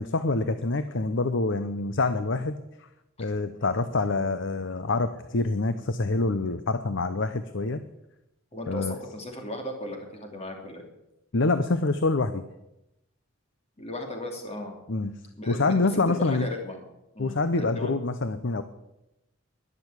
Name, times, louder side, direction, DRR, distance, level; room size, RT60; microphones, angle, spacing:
voice 1, 0.0-2.6 3.2-7.8 8.7-9.0 11.3-12.4 14.9-15.1 15.5-16.5 17.2-18.6, left 3 dB, 60° left, 11 dB, 0.7 m, -26 dB
voice 2, 8.5-10.9 13.8-14.8 15.4-16.9 17.1-18.0, left 1 dB, 30° left, 3 dB, 2.8 m, -36 dB
12.0 x 11.0 x 8.1 m, 0.89 s
head